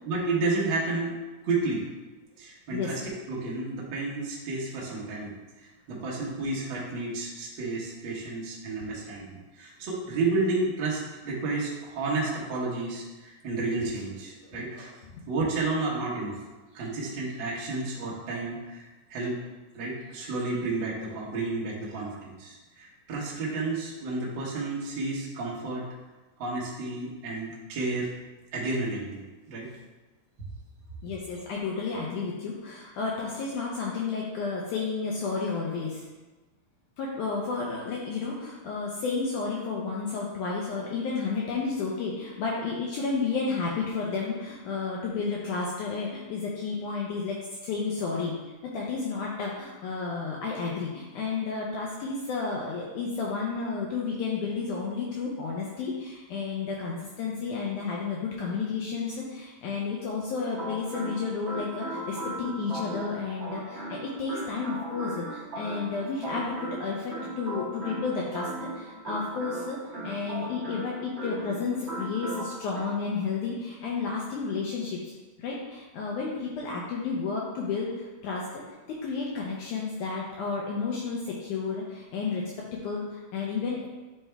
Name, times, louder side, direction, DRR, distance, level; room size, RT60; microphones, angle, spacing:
voice 1, 0.0-1.1 1.4-1.9 2.4-3.0 3.3-5.3 5.9-14.9 15.3-16.4 16.7-18.8 19.1-19.4 19.7-25.8 26.4-28.1 28.5-29.7, right 3 dB, 65° right, -5 dB, 1.2 m, -31 dB
voice 2, 31.0-36.1 37.0-69.8 70.0-82.4 82.8-83.9, left 4 dB, 80° left, -3 dB, 1.9 m, -32 dB
sound 1, 60.4-72.8, right 1 dB, 35° right, 1.0 m, -38 dB
8.9 x 3.4 x 3.4 m, 1.2 s
omnidirectional pair, 4.1 m